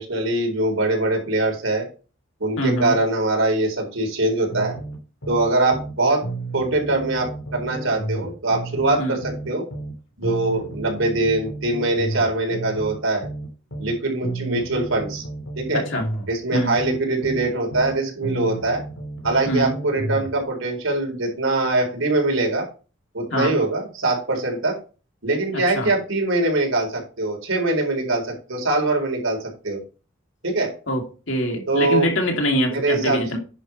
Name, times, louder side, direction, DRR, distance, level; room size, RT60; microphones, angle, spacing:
voice 1, 0.0-1.9 2.4-4.7 5.3-6.2 6.5-9.6 10.2-13.3 13.8-15.2 15.6-15.8 16.3-18.8 19.2-22.6 23.1-24.8 25.2-29.8 30.4-30.7 31.7-32.1 32.6-33.2, right 2 dB, 85° right, 4.2 m, -22 dB
voice 2, 2.6-3.0 9.0-9.1 15.7-16.1 16.5-16.7 19.5-19.8 23.3-23.6 25.5-25.9 30.9-33.4, equal, 65° left, 2.7 m, -24 dB
sound 1, 4.5-6.0 6.2-9.9 10.2-13.9 14.2-17.9 18.2-20.3, right 2 dB, 80° left, 2.9 m, -32 dB
10.0 x 5.8 x 4.3 m
head